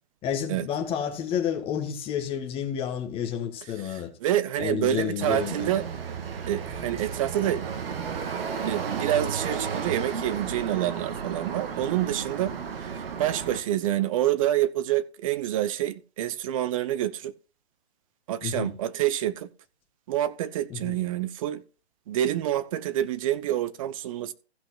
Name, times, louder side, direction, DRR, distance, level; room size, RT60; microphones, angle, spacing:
voice 1, 0.2-4.1 4.6-5.7 18.4-18.7 20.7-21.0, left 9 dB, 15° left, 1.5 m, -30 dB
voice 2, 3.8-5.8 6.5-7.6 8.6-12.5 12.8-17.3 18.3-19.5 20.1-21.6 22.1-24.3, right 12 dB, 30° right, 0.8 m, -27 dB
sound 1, 5.2-13.6, right 6 dB, 60° right, 1.7 m, -33 dB
15.5 x 5.7 x 3.8 m
hypercardioid pair, 145°, 33 cm